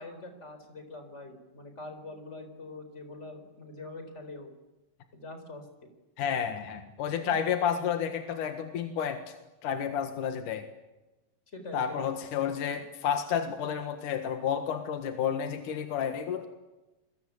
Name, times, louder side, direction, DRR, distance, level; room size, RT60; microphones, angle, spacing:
voice 1, 0.0-4.5 5.1-5.7 7.2-7.3 11.5-12.2, left 2 dB, 15° left, 7 dB, 3.9 m, -44 dB
voice 2, 6.2-9.3 9.6-10.6 11.7-16.5, left 8 dB, 60° left, 6 dB, 2.4 m, -31 dB
28.5 x 22.0 x 8.4 m, 1.0 s
omnidirectional pair, 5.5 m